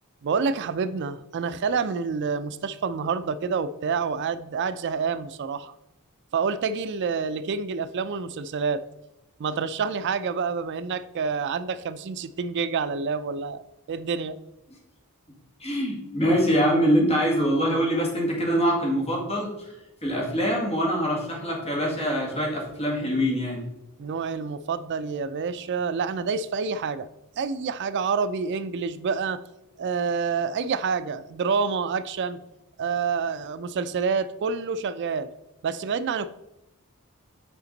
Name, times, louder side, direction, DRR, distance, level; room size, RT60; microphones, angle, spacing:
voice 1, 0.2-5.7 6.3-8.8 9.4-14.4 24.0-27.1 27.4-29.4 29.8-32.4 32.8-35.3 35.6-36.3, right 5 dB, 50° right, 14 dB, 0.3 m, -28 dB
voice 2, 15.6-19.7 20.0-23.6, equal, 30° left, -2 dB, 2.0 m, -24 dB
8.6 x 5.1 x 3.9 m, 0.91 s
head